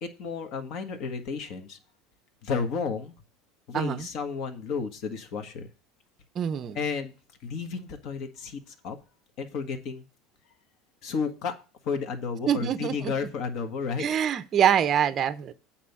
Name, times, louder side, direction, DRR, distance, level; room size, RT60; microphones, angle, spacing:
voice 1, 0.0-1.8 2.4-3.1 3.7-5.7 6.7-7.1 7.4-9.0 9.4-10.0 11.0-11.6 11.8-14.1, left 5 dB, 50° left, 1.6 m, -32 dB
voice 2, 3.7-4.1 6.4-6.8 12.5-13.1 14.0-15.5, right 9 dB, 30° right, 0.6 m, -25 dB
8.8 x 4.3 x 7.1 m
cardioid pair, 160°, 0 cm